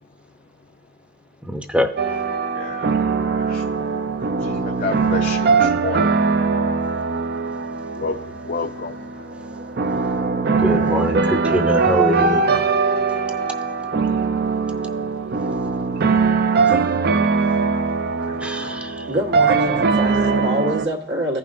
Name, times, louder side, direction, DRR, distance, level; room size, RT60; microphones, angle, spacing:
voice 1, 1.5-1.9 10.6-12.5 18.4-19.0, equal, 5° right, 7 dB, 0.6 m, -22 dB
sound 1, 2.0-20.9, right 4 dB, 55° right, 0.5 m, -21 dB
voice 2, 2.5-2.9 3.2-3.8 4.4-6.2 8.0-8.2 8.5-9.0 18.3-18.8, left 4 dB, 50° left, 5 dB, 0.4 m, -30 dB
voice 3, 19.1-21.4, equal, 75° right, -3 dB, 1.4 m, -25 dB
15.5 x 5.4 x 2.5 m, 0.84 s
head